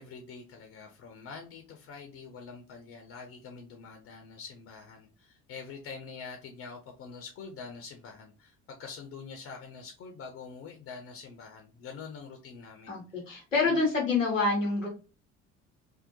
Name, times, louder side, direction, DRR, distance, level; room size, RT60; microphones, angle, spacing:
voice 1, 0.0-13.2 13.6-13.8, left 5 dB, 40° left, 0.5 m, -45 dB
voice 2, 12.9-14.9, left 3 dB, 90° left, 0.7 m, -27 dB
2.7 x 2.1 x 2.6 m
figure-of-eight pair, 55°, 38 cm